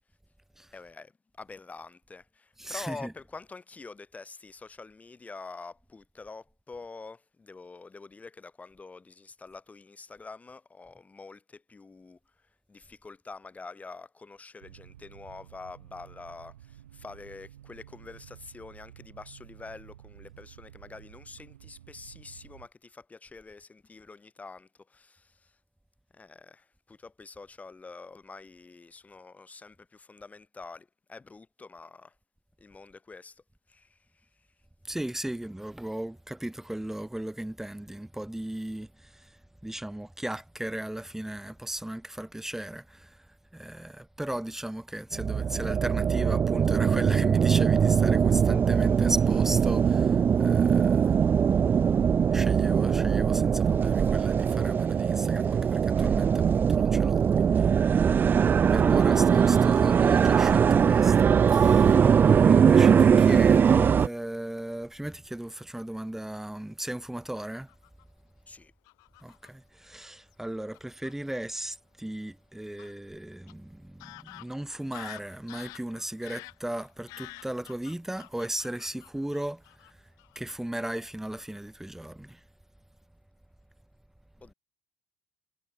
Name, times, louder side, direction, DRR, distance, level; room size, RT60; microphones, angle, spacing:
voice 1, 0.7-1.1 1.4-25.6 26.1-32.2 32.6-34.5 58.6-59.1 61.9-62.3 68.5-68.7 84.4-84.5, left 4 dB, 20° left, 5.1 m, -46 dB
voice 2, 2.6-3.1 34.8-51.2 52.3-57.7 58.7-62.0 62.3-67.7 69.2-80.1 80.4-82.4, right 1 dB, 5° right, 3.6 m, -36 dB
sound 1, 14.6-22.7, right 12 dB, 75° right, 2.8 m, -51 dB
sound 2, 45.1-64.1, right 7 dB, 30° right, 0.4 m, -21 dB
Fowl / Bird vocalization bird call bird song, 67.3-68.0 68.8-69.5 70.3-70.4 70.7-71.1 72.8-72.9 73.5-73.6 74.0-79.9 80.2-80.4 80.7-81.0 81.3-81.6, left 23 dB, 60° left, 4.7 m, -48 dB
figure-of-eight pair, 60°, 7 cm